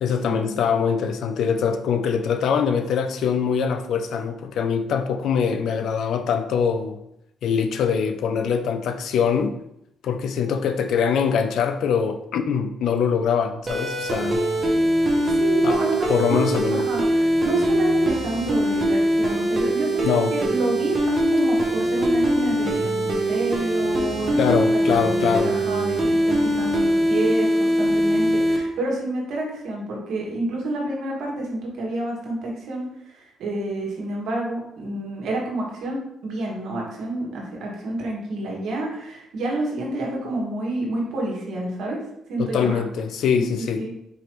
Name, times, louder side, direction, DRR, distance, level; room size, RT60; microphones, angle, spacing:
voice 1, 0.0-7.0 7.4-9.6 10.0-14.4 15.6-15.8 16.1-16.9 20.0-20.3 24.4-25.5 42.4-43.8, left 7 dB, 75° left, 8 dB, 0.4 m, -23 dB
sound 1, 13.7-28.6, right 1 dB, 30° right, 0.9 m, -22 dB
voice 2, 15.3-42.0 42.3-42.8 43.3-43.9, right 2 dB, 75° right, -2 dB, 1.4 m, -29 dB
4.7 x 3.0 x 3.0 m, 0.80 s
cardioid pair, 90°, 0 cm